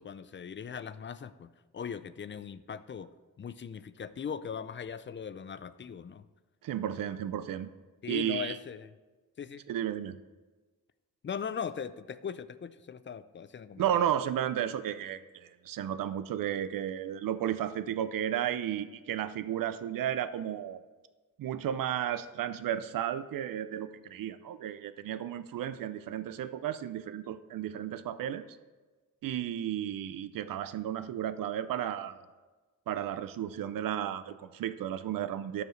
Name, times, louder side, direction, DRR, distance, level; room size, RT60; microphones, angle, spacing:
voice 1, 0.0-3.1 3.4-6.2 8.0-8.9 9.4-9.6 11.2-13.8, left 7 dB, 35° left, 14 dB, 0.4 m, -39 dB
voice 2, 6.6-7.7 8.1-8.6 9.7-10.2 13.8-20.8 21.4-28.4 29.2-32.2 32.9-35.6, right 10 dB, 85° right, 13 dB, 0.5 m, -33 dB
13.0 x 4.8 x 3.2 m, 1.3 s
cardioid pair, 60°, 33 cm